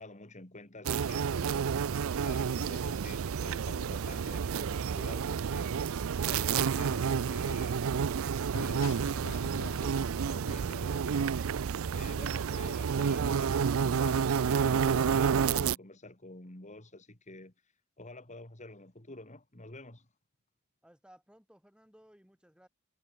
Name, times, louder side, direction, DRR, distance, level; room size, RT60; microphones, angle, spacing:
voice 1, 0.0-1.9 2.2-5.9 6.3-7.8 8.6-11.4 11.9-17.5 18.0-20.1, left 2 dB, 35° left, 2.9 m, -48 dB
sound 1, 0.9-15.8, right 6 dB, 70° right, 0.4 m, -30 dB
sound 2, 6.3-11.2, left 4 dB, 85° left, 0.9 m, -46 dB
voice 2, 20.8-22.7, equal, 5° right, 8.0 m, -60 dB
head